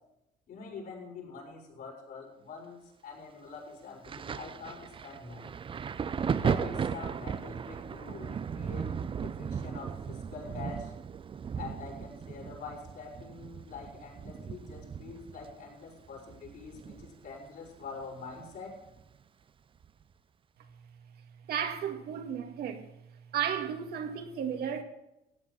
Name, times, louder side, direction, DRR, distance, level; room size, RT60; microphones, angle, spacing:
voice 1, 0.5-5.5 6.4-8.9 9.2-10.9 11.6-18.8, left 4 dB, 65° left, 6.8 m, -45 dB
Thunder, 4.0-17.4 17.7-19.0 19.8-20.0, right 7 dB, 30° right, 0.6 m, -36 dB
voice 2, 21.5-22.9 23.3-24.8, right 8 dB, 70° right, 1.9 m, -33 dB
16.0 x 8.7 x 7.5 m
cardioid pair, 110°, 17 cm